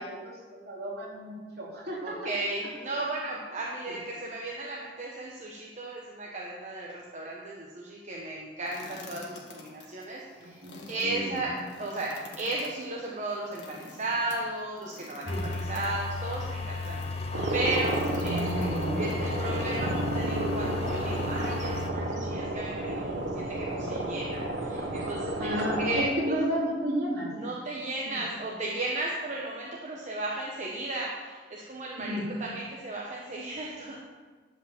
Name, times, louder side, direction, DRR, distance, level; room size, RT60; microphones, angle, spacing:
voice 1, 0.0-2.2 3.9-4.0 10.4-11.4 15.2-15.5 18.2-19.0 25.4-27.3 28.0-28.2 32.0-32.2, right 1 dB, 60° right, -4 dB, 3.2 m, -33 dB
voice 2, 2.0-10.6 10.9-25.5 25.8-26.4 27.3-34.0, right 2 dB, 40° right, -3 dB, 1.1 m, -35 dB
sound 1, 8.7-17.2 17.7-19.1, left 3 dB, 80° left, 1.8 m, -48 dB
sound 2, 15.3-21.9, left 3 dB, 35° left, 0.9 m, -34 dB
sound 3, 17.3-26.0, right 1 dB, 90° right, 1.2 m, -31 dB
11.0 x 5.0 x 7.6 m, 1.4 s
head